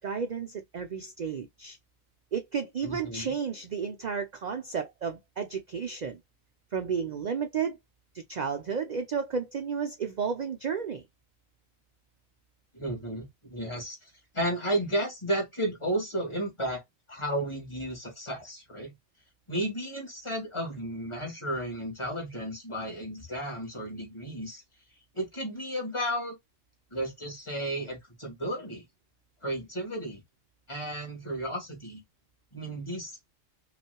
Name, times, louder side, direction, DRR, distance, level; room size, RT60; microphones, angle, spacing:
voice 1, 0.0-1.8 2.3-6.2 6.7-7.8 8.1-11.0, right 6 dB, 55° right, 0.5 m, -32 dB
voice 2, 2.8-3.3 12.7-18.9 19.5-24.6 25.1-26.4 26.9-28.8 29.4-30.2 30.7-32.0 32.5-33.1, right 1 dB, 20° left, 2.3 m, -33 dB
5.4 x 2.5 x 2.2 m
omnidirectional pair, 1.4 m